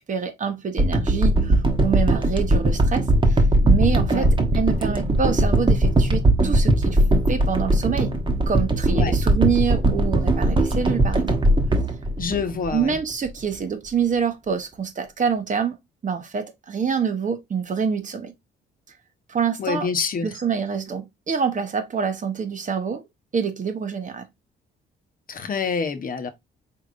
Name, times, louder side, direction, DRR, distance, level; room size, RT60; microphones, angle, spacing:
voice 1, 0.0-4.3 4.5-7.0 7.3-8.1 8.5-11.4 12.7-15.7 16.0-18.3 19.3-19.9 20.2-23.0 23.3-24.3, right 6 dB, 40° right, 1.0 m, -26 dB
sound 1, 0.8-13.0 13.5-13.6, right 1 dB, 25° right, 1.1 m, -20 dB
voice 2, 12.2-12.9 19.6-20.3 25.3-26.3, left 5 dB, 45° left, 0.9 m, -26 dB
4.7 x 3.6 x 2.5 m
cardioid pair, 90°, 20 cm